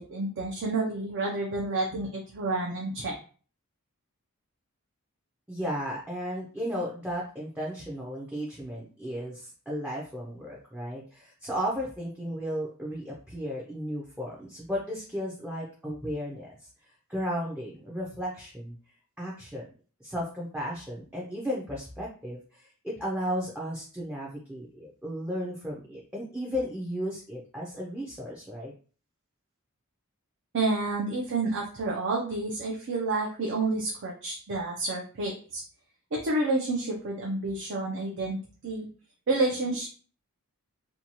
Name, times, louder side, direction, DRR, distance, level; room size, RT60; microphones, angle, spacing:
voice 1, 0.0-3.2 30.5-35.6 36.1-38.9 39.3-39.9, right 2 dB, 55° right, -2 dB, 0.5 m, -29 dB
voice 2, 5.5-16.5 17.1-18.8 19.2-19.7 20.0-28.7, equal, 5° right, -4 dB, 0.5 m, -34 dB
2.7 x 2.3 x 2.9 m, 0.40 s
head